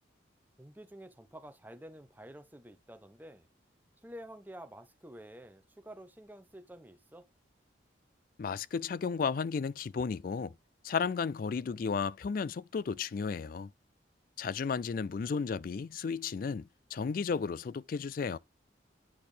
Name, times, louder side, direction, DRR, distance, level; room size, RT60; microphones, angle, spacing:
voice 1, 0.6-3.5 4.0-7.3, right 1 dB, 10° right, 0.7 m, -50 dB
voice 2, 8.4-10.6 10.8-13.7 14.4-18.4, left 5 dB, 50° left, 0.3 m, -33 dB
10.0 x 4.3 x 3.3 m
head